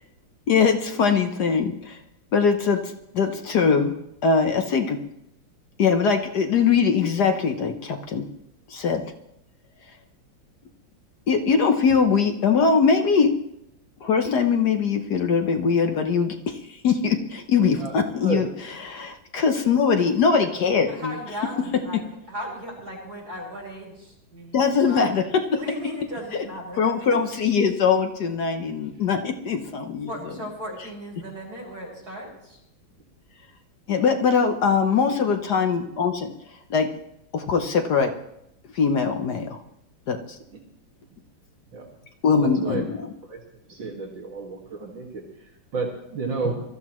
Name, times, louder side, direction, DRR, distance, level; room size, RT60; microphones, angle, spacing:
voice 1, 0.5-2.0 2.3-3.9 4.2-5.0 5.8-8.3 8.7-9.1 11.3-13.4 14.0-18.5 18.9-21.1 21.9-22.0 24.5-25.6 26.8-30.1 33.9-36.3 36.7-36.9 37.3-38.2 38.7-39.6 40.1-40.4 42.2-43.0, left 5 dB, 60° left, 6 dB, 1.3 m, -22 dB
voice 2, 17.8-18.4 40.5-40.6 41.7-41.8 42.4-42.8 43.3-43.4 43.7-46.6, right 3 dB, 70° right, -2 dB, 2.7 m, -31 dB
voice 3, 20.9-22.0 22.3-25.1 25.6-27.3 30.1-32.6 35.3-35.7, equal, 50° right, -4 dB, 6.7 m, -37 dB
23.0 x 14.0 x 3.0 m, 0.81 s
omnidirectional pair, 2.1 m